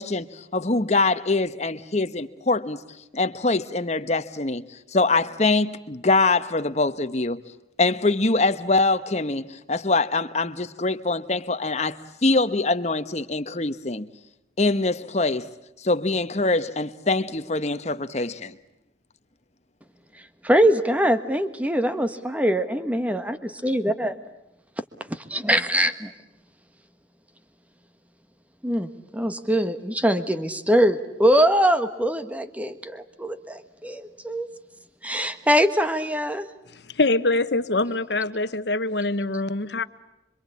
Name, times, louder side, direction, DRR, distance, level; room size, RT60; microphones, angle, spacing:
voice 1, 0.0-2.8 3.1-4.6 4.9-7.4 7.8-14.1 14.6-15.5 15.8-18.6, left 3 dB, 35° left, 11 dB, 1.1 m, -23 dB
voice 2, 20.4-24.2 25.3-26.1 28.6-34.5 35.0-36.5, right 1 dB, 10° right, 10 dB, 1.4 m, -23 dB
voice 3, 36.9-39.8, left 2 dB, 65° left, 13 dB, 1.2 m, -24 dB
26.5 x 24.5 x 8.5 m, 0.89 s
head